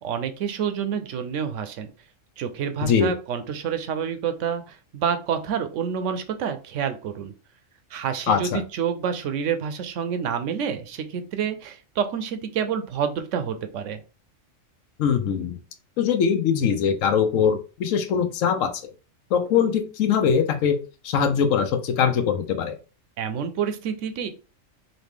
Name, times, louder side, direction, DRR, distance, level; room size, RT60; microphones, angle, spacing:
voice 1, 0.0-1.9 2.4-7.3 7.9-14.0 23.2-24.3, right 7 dB, 70° right, 9 dB, 0.9 m, -28 dB
voice 2, 2.8-3.1 8.3-8.6 15.0-15.6 16.0-18.7 19.3-20.8 21.0-22.7, left 7 dB, 80° left, 8 dB, 1.0 m, -22 dB
3.9 x 2.7 x 3.5 m, 0.34 s
omnidirectional pair, 1.3 m